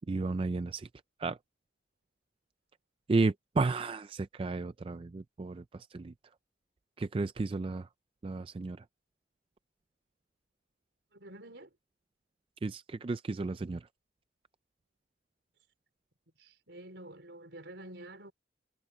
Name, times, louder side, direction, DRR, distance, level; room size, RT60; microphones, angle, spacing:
voice 1, 0.1-0.9 1.2-1.4 3.1-6.1 7.0-7.9 8.2-8.8 12.6-13.8, right 3 dB, 30° right, 0.3 m, -33 dB
voice 2, 11.1-11.7 16.4-18.3, right 1 dB, 70° right, 4.5 m, -48 dB
head